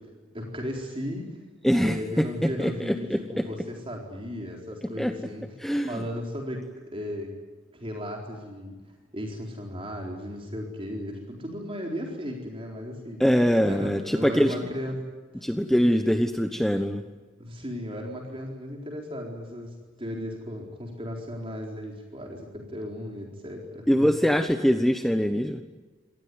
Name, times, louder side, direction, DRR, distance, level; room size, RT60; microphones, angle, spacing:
voice 1, 0.3-1.4 1.6-5.4 5.9-7.3 7.7-8.8 9.1-13.2 13.6-15.1 15.4-15.5 17.4-24.1, equal, 25° right, 1 dB, 4.2 m, -36 dB
voice 2, 1.6-3.4 5.0-5.1 5.6-6.0 13.2-14.5 15.4-17.0 23.9-25.6, equal, ahead, 7 dB, 1.1 m, -23 dB
27.5 x 19.0 x 9.6 m, 1.3 s
head